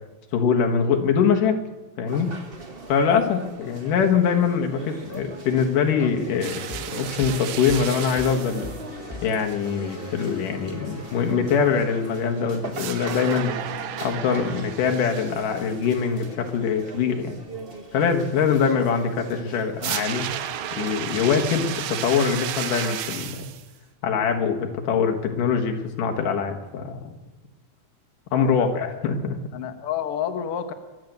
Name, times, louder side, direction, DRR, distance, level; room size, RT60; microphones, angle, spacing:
voice 1, 0.3-1.6 2.0-2.4 2.9-8.7 9.2-13.5 14.0-17.4 17.9-20.3 20.7-23.4 24.0-27.1 28.3-29.3, left 6 dB, 90° left, 3 dB, 3.1 m, -23 dB
sound 1, 2.1-21.8, right 3 dB, 40° right, 0.8 m, -40 dB
sound 2, 6.4-8.8 12.7-15.7 19.8-23.7, right 10 dB, 70° right, 1.5 m, -33 dB
sound 3, 6.5-14.7, left 2 dB, 5° right, 1.3 m, -41 dB
voice 2, 28.5-28.9 29.5-30.7, left 9 dB, 60° left, 7 dB, 1.7 m, -29 dB
22.5 x 7.6 x 8.1 m, 1.2 s
omnidirectional pair, 3.6 m